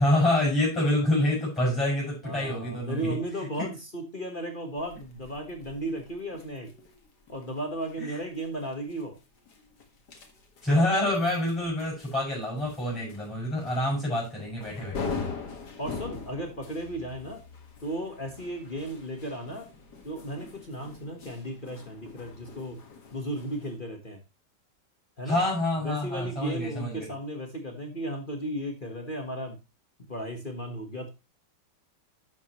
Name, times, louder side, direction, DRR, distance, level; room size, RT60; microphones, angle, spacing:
voice 1, 0.0-3.2 3.6-3.7 8.0-8.1 10.6-15.2 25.2-27.1, left 1 dB, 5° left, -5 dB, 6.4 m, -27 dB
voice 2, 2.2-6.7 7.3-9.2 13.5-13.7 15.2-15.5 15.8-17.4 17.8-19.7 20.0-22.8 23.1-24.2 25.2-25.4 25.8-29.6 30.1-31.1, right 1 dB, 30° left, 4 dB, 1.5 m, -35 dB
sound 1, 4.8-23.8, left 4 dB, 65° left, 2.3 m, -43 dB
11.5 x 7.3 x 3.1 m, 0.27 s
omnidirectional pair, 1.9 m